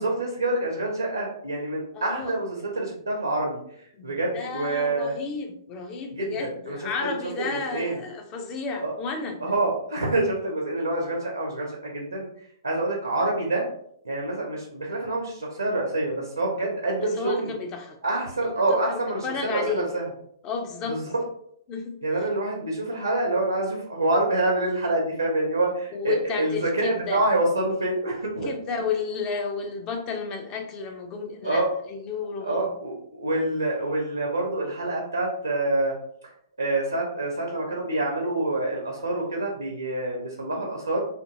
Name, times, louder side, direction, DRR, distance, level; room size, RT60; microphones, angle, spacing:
voice 1, 0.0-5.1 6.1-6.8 7.0-7.1 7.5-7.9 8.8-8.9 9.4-13.6 14.0-17.5 18.0-20.0 20.9-21.0 22.0-28.5 31.4-31.7 32.4-35.9 36.6-41.0, right 2 dB, 80° right, -1 dB, 0.6 m, -27 dB
voice 2, 1.9-2.3 3.9-9.4 17.0-18.0 18.7-19.9 20.4-21.0 21.7-22.0 25.9-27.2 28.2-32.7, left 5 dB, 25° left, 4 dB, 0.5 m, -32 dB
2.6 x 2.6 x 2.6 m, 0.68 s
figure-of-eight pair, 115°, 2 cm